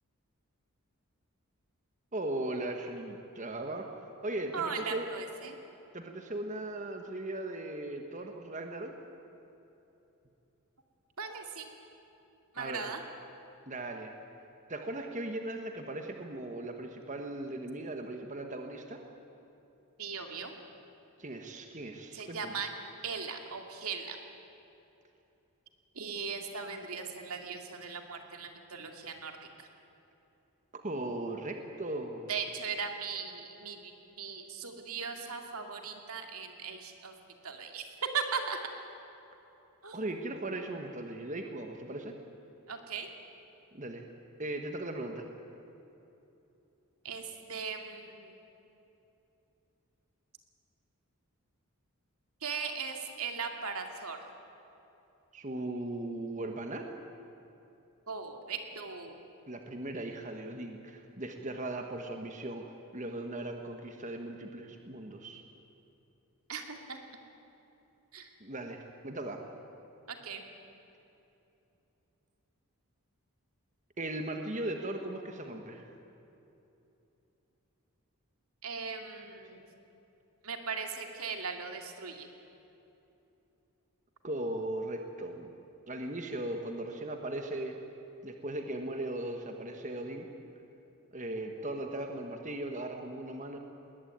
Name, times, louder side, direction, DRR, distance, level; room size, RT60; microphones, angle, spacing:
voice 1, 2.1-3.9 4.2-5.1 5.9-8.9 12.6-12.9 13.7-14.1 14.7-19.0 21.2-22.6 30.8-32.3 39.9-42.1 43.7-44.1 44.4-45.3 55.3-56.9 59.5-62.6 62.9-65.4 68.4-69.4 74.0-75.9 84.2-85.6 85.9-87.8 88.2-90.3 91.1-93.6, right 1 dB, 35° right, 4 dB, 1.4 m, -38 dB
voice 2, 4.5-5.6 11.2-11.7 12.5-13.0 20.0-20.6 22.1-22.7 23.0-24.2 25.9-29.7 32.3-33.9 34.2-37.2 37.4-37.9 38.1-38.6 39.8-40.1 42.7-43.1 47.0-48.3 52.4-54.2 58.1-59.2 66.5-67.0 68.1-68.3 70.1-70.4 78.6-79.7 80.4-82.3, right 5 dB, 80° right, 4 dB, 2.4 m, -38 dB
20.5 x 19.0 x 9.4 m, 2.9 s
head